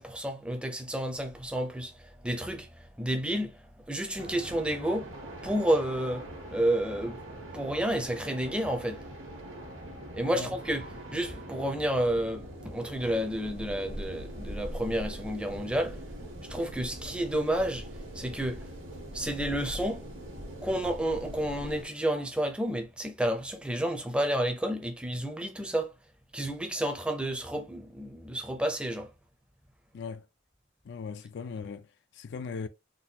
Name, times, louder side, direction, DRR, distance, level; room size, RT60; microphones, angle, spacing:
voice 1, 0.0-5.1 5.4-9.0 10.1-10.8 11.1-16.0 16.5-17.9 18.1-18.7 19.1-20.0 20.6-25.9 26.3-29.1, right 1 dB, 5° right, 0.5 m, -30 dB
sound 1, 4.2-21.8, right 1 dB, 75° right, 1.3 m, -42 dB
voice 2, 29.9-30.3 30.8-32.7, left 5 dB, 65° left, 0.4 m, -39 dB
3.8 x 2.3 x 2.7 m
head